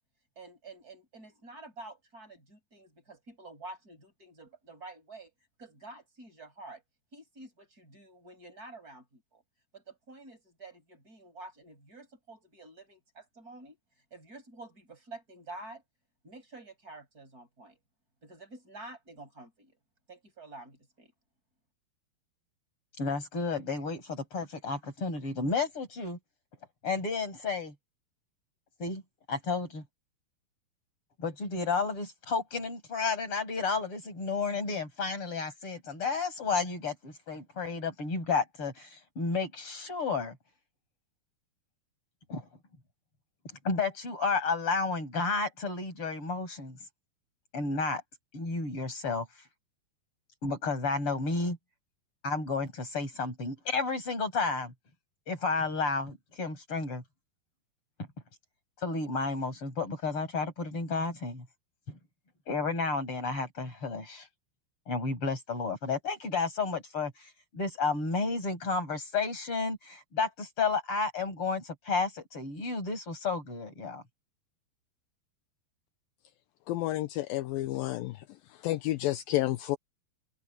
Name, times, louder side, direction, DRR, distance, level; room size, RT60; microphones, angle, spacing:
voice 1, 0.3-5.3 5.6-6.8 7.1-9.4 9.7-15.8 16.2-17.8 18.2-19.8 20.1-21.1, right 2 dB, 20° right, 6.6 m, -49 dB
voice 2, 23.0-26.2 26.8-27.7 28.8-29.0 29.3-29.8 31.2-40.4 42.3-42.5 43.4-46.8 47.5-48.0 48.3-49.3 50.4-51.6 52.2-54.7 55.3-57.0 58.8-61.5 61.9-62.0 62.5-64.3 64.9-74.0, left 4 dB, 35° left, 7.6 m, -32 dB
voice 3, 76.7-78.2 78.6-79.8, left 15 dB, 75° left, 2.4 m, -30 dB
open air
omnidirectional pair, 4.5 m